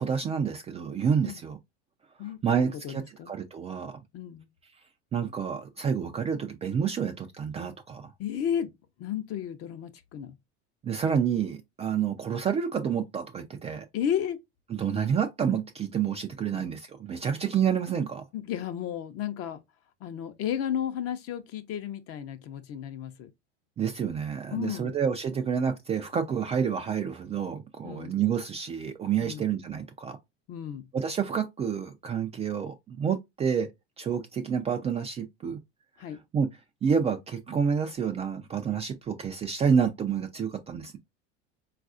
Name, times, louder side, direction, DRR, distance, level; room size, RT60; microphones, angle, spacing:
voice 1, 0.0-1.6 2.2-4.0 5.1-8.1 10.8-13.9 14.7-18.2 23.8-30.2 30.9-33.7 34.0-35.6 36.3-36.5 36.8-41.0, right 7 dB, 20° right, 0.3 m, -29 dB
voice 2, 2.2-3.3 4.1-4.5 8.2-8.7 9.0-10.4 13.9-14.4 16.5-16.7 18.3-19.6 20.0-23.3 24.5-25.0 27.8-28.1 29.2-29.4 30.5-30.9 36.0-36.2, left 9 dB, 45° left, 0.7 m, -33 dB
3.9 x 2.4 x 2.4 m
hypercardioid pair, 95°, 35 cm